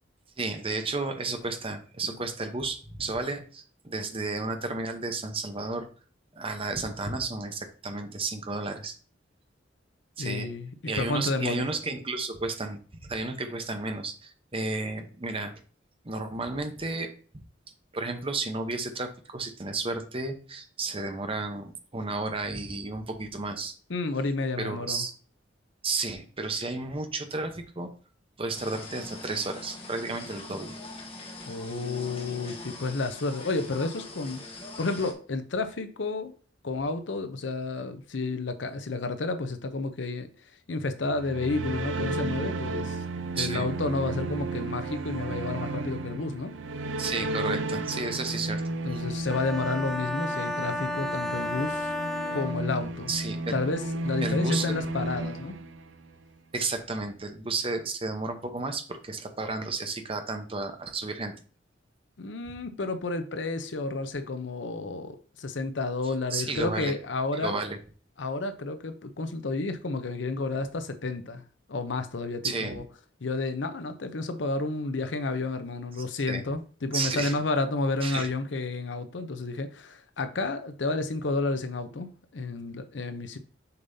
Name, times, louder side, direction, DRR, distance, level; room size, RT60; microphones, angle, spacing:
voice 1, 0.4-5.9 6.3-8.9 10.2-10.5 10.9-15.5 16.0-17.1 17.9-23.7 24.6-25.1 25.8-27.9 28.4-30.7 43.4-43.7 47.0-48.6 53.1-53.6 54.2-54.8 56.5-61.3 66.3-66.9 67.4-67.8 72.4-72.8 76.3-76.4 76.9-77.3 78.0-78.3, right 3 dB, 30° right, 0.9 m, -32 dB
voice 2, 10.2-10.7 11.0-11.7 23.9-25.1 31.5-36.3 36.6-40.3 40.7-43.0 43.3-46.5 48.8-51.9 52.3-53.1 53.5-55.6 62.2-67.6 68.2-71.4 71.7-72.8 73.2-83.4, left 3 dB, 75° left, 0.7 m, -31 dB
sound 1, 28.5-35.1, left 2 dB, 30° left, 1.2 m, -42 dB
sound 2, 41.0-56.2, right 2 dB, 90° right, 0.6 m, -33 dB
sound 3, 49.3-53.2, left 1 dB, ahead, 1.1 m, -33 dB
6.7 x 5.5 x 2.7 m
head